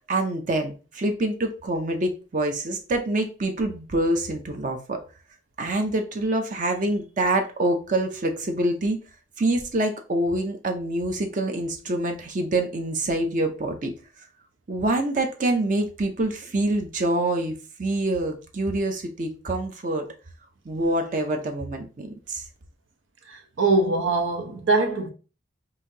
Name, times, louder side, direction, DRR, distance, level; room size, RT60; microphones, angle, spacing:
voice 1, 0.1-5.0 5.6-9.0 9.4-13.9 14.7-17.5 17.8-20.0 20.7-22.4, right 1 dB, 40° right, 0.6 m, -26 dB
voice 2, 23.3-25.1, right 3 dB, 80° right, 0.8 m, -23 dB
5.6 x 2.6 x 2.7 m
head